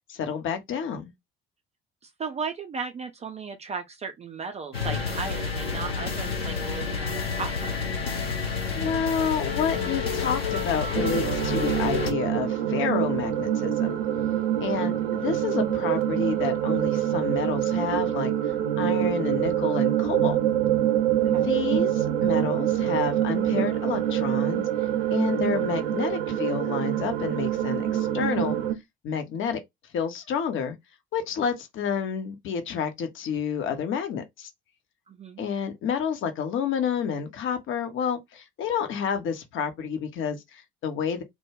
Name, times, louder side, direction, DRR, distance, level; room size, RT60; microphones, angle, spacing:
voice 1, 0.1-1.1 8.7-13.9 14.6-18.3 18.8-20.4 21.3-24.7 25.1-28.6 29.0-29.6 29.9-30.8 31.1-34.5 35.4-41.2, left 7 dB, 45° left, 0.7 m, -29 dB
voice 2, 2.0-7.7 21.2-21.6 35.1-35.4, right 5 dB, 20° right, 0.4 m, -36 dB
sound 1, 4.7-12.1, left 5 dB, 85° left, 0.7 m, -29 dB
sound 2, 10.9-28.8, right 11 dB, 75° right, 0.5 m, -25 dB
2.2 x 2.1 x 3.2 m
figure-of-eight pair, 55°, 30 cm